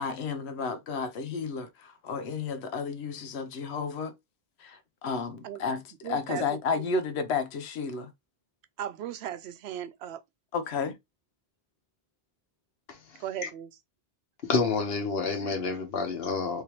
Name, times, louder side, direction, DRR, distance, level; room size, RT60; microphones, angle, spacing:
voice 1, 0.0-4.1 4.6-8.1 10.5-11.0, left 5 dB, 90° left, 1.0 m, -32 dB
voice 2, 6.0-6.9 8.8-10.2 13.2-13.7, right 10 dB, 85° right, 0.8 m, -37 dB
voice 3, 12.9-13.5 14.4-16.6, left 4 dB, 70° left, 1.2 m, -29 dB
3.4 x 2.9 x 2.9 m
omnidirectional pair, 1.1 m